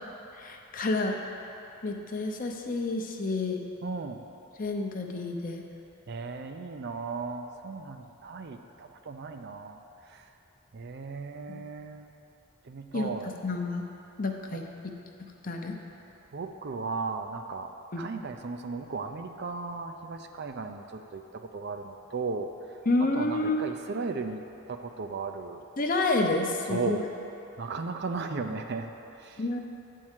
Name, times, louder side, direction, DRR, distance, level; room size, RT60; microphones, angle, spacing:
voice 1, 0.3-1.2 1.8-3.6 4.6-5.6 11.5-11.6 12.9-13.1 13.4-13.8 14.2-14.7 15.4-15.7 17.9-18.1 22.9-23.6 25.8-27.0 29.4-29.6, left 2 dB, 40° left, 2 dB, 0.7 m, -29 dB
voice 2, 3.8-4.3 6.1-9.8 10.1-10.2 10.7-12.1 12.6-13.3 14.5-14.6 16.3-17.7 18.0-22.5 23.1-24.4 24.7-25.6 26.7-27.1 27.6-29.4, right 4 dB, 50° right, 6 dB, 0.4 m, -36 dB
8.6 x 4.6 x 7.3 m, 2.8 s
head